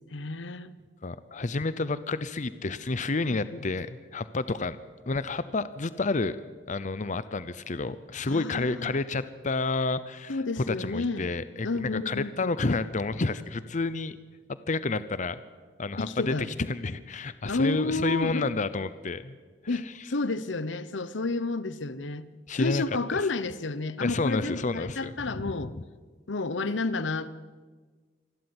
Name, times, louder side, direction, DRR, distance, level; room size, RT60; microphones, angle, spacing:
voice 1, 0.1-0.7 3.5-3.6 8.3-8.9 10.3-11.3 11.6-12.5 16.0-16.5 17.4-18.5 19.7-22.3 22.5-25.7 26.3-27.3, left 3 dB, 80° left, 0.9 m, -31 dB
voice 2, 1.0-4.8 5.1-6.4 6.7-10.4 10.7-14.2 14.7-15.4 15.8-19.4 19.7-19.8 22.5-22.8 23.1-23.2 24.0-25.7, left 3 dB, 45° left, 0.7 m, -30 dB
26.0 x 12.5 x 9.8 m
head